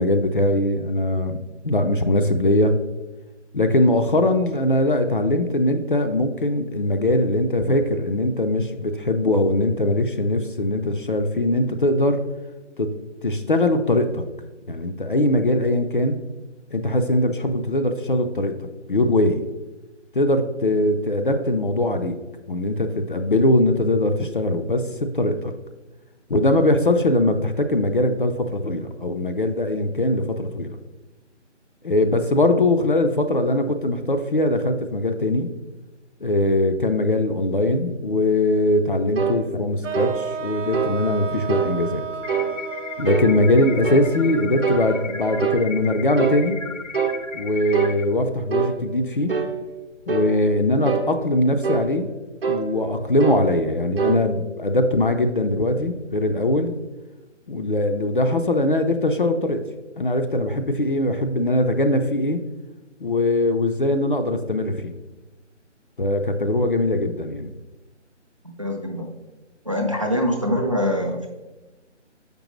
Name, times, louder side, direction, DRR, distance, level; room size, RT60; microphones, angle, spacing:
voice 1, 0.0-1.4 1.6-2.8 3.5-12.2 12.8-12.9 13.2-14.2 14.7-16.2 16.7-19.5 20.1-22.2 22.5-25.5 26.3-30.8 31.8-35.5 36.2-42.0 43.0-46.6 47.3-49.4 50.1-52.1 52.5-56.7 57.5-59.6 60.0-62.4 63.0-64.9 66.0-67.5, left 1 dB, 45° left, 6 dB, 0.4 m, -21 dB
sound 1, 39.2-39.4 39.9-40.2 40.7-41.0 41.5-41.7 42.3-42.5 43.1-43.3 43.8-44.1 44.6-45.6 46.2-46.4 46.9-47.2 47.7-48.0 48.5-48.8 49.3-49.5 50.1-50.3 50.9-51.1 51.6-51.9 52.4-52.7 53.2-53.4 54.0-54.2, right 6 dB, 50° right, 0.8 m, -24 dB
sound 2, 39.8-45.9, right 6 dB, 80° right, 0.6 m, -34 dB
sound 3, 42.2-48.0, left 5 dB, 85° left, 0.7 m, -35 dB
voice 2, 68.4-69.1 69.6-71.3, equal, 30° right, 2 dB, 0.4 m, -24 dB
6.6 x 5.2 x 3.1 m, 1.1 s
figure-of-eight pair, 155°, 36 cm